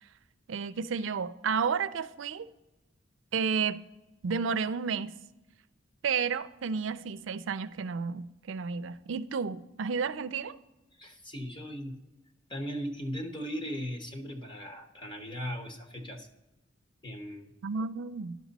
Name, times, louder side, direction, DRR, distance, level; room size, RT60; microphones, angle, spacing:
voice 1, 0.5-2.5 3.3-3.8 4.2-5.1 6.0-10.6 17.6-18.4, right 5 dB, 85° right, 0.4 m, -31 dB
voice 2, 11.0-12.0 12.5-16.3 17.0-17.5, equal, 25° left, 1.0 m, -38 dB
11.0 x 6.1 x 4.0 m
head